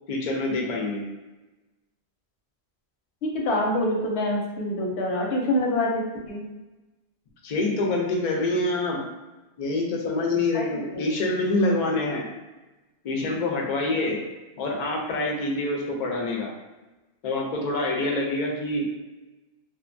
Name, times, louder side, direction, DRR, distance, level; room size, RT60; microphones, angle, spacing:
voice 1, 0.1-1.0 7.4-9.0 9.6-12.3 13.0-14.2 14.6-16.5 17.2-18.9, left 2 dB, 55° left, 0 dB, 0.5 m, -26 dB
voice 2, 3.2-6.4 10.5-10.6 10.9-11.1, left 1 dB, 85° left, 0 dB, 0.9 m, -26 dB
2.7 x 2.2 x 2.5 m, 1.1 s
omnidirectional pair, 1.1 m